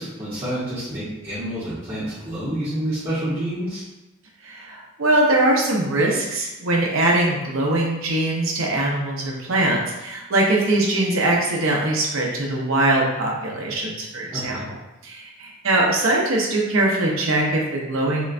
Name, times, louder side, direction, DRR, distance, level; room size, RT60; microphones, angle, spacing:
voice 1, 0.0-3.8 14.3-14.7, right 1 dB, 25° right, -13 dB, 0.8 m, -28 dB
voice 2, 4.4-14.8 15.0-18.3, right 2 dB, 75° right, -2 dB, 0.7 m, -22 dB
3.8 x 2.1 x 2.4 m, 0.99 s
head